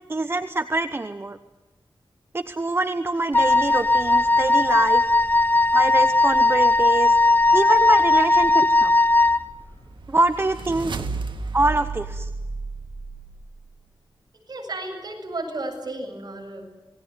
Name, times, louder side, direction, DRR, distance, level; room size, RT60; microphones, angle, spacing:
voice 1, 0.1-1.4 2.3-5.1 5.7-7.1 7.5-8.9 10.1-11.0 11.5-12.3, right 2 dB, 25° right, 10 dB, 0.9 m, -24 dB
Wind instrument woodwind instrument, 3.3-9.4, left 2 dB, 20° left, 0.8 m, -18 dB
sound 1, 9.4-13.6, right 3 dB, 70° right, 1.8 m, -33 dB
voice 2, 14.5-16.6, right 2 dB, 50° right, 2 dB, 7.5 m, -33 dB
27.0 x 19.5 x 9.6 m, 1.2 s
wide cardioid pair, 135°, 9 cm